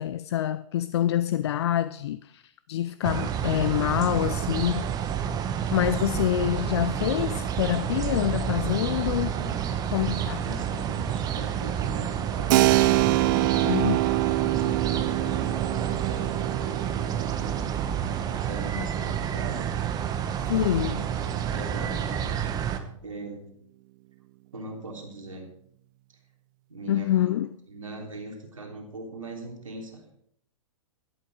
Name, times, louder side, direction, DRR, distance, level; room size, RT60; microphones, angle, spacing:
voice 1, 0.0-4.9 5.7-9.4 9.9-10.4 13.6-14.0 17.0-17.2 18.8-18.9 20.5-21.0 26.9-27.5, left 12 dB, 55° left, 0.5 m, -26 dB
sound 1, 3.0-22.8, right 8 dB, 25° right, 1.2 m, -29 dB
voice 2, 9.3-9.7 10.4-12.6 14.4-17.6 18.3-19.7 20.8-22.6 23.0-23.4 24.5-25.5 26.7-27.3 27.7-30.0, right 2 dB, 80° right, 3.4 m, -40 dB
Keyboard (musical), 12.5-20.9, right 18 dB, 40° right, 0.4 m, -26 dB
12.0 x 11.0 x 4.8 m
figure-of-eight pair, 110°, 17 cm